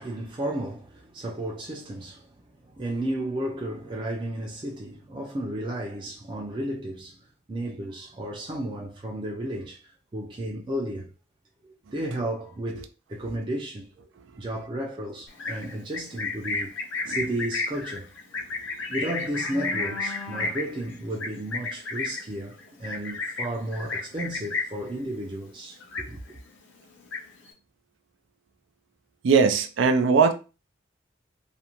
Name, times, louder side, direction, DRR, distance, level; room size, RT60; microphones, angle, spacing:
voice 1, 0.0-2.3 2.6-7.2 7.5-9.8 10.1-11.1 11.6-14.1 14.4-18.1 18.9-26.4, right 1 dB, 25° right, 0.4 m, -33 dB
Livestock farm animals working animals, 15.3-24.9 25.2-25.5 25.8-26.5 26.8-27.5, left 3 dB, 85° left, 0.6 m, -32 dB
voice 2, 29.2-30.3, right 5 dB, 85° right, 0.4 m, -20 dB
2.4 x 2.1 x 2.9 m
head